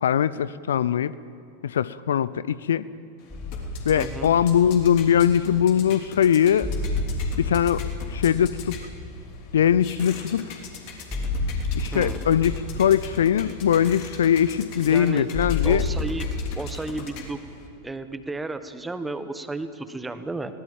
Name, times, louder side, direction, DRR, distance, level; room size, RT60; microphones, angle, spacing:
voice 1, 0.0-1.1 1.6-2.8 3.9-6.7 7.4-8.8 9.5-10.4 11.7-12.5 12.8-15.8, left 9 dB, 65° left, 18 dB, 0.5 m, -21 dB
sound 1, 3.2-17.7, left 6 dB, 45° left, 3.2 m, -43 dB
sound 2, 3.3-16.5, left 3 dB, 10° left, 3.7 m, -31 dB
voice 2, 3.9-4.3 11.9-12.2 14.8-15.3 15.6-16.3 16.5-17.4 17.8-20.5, right 2 dB, 10° right, 11 dB, 1.2 m, -33 dB
22.0 x 18.0 x 7.5 m, 2.4 s
figure-of-eight pair, 90°, 0 cm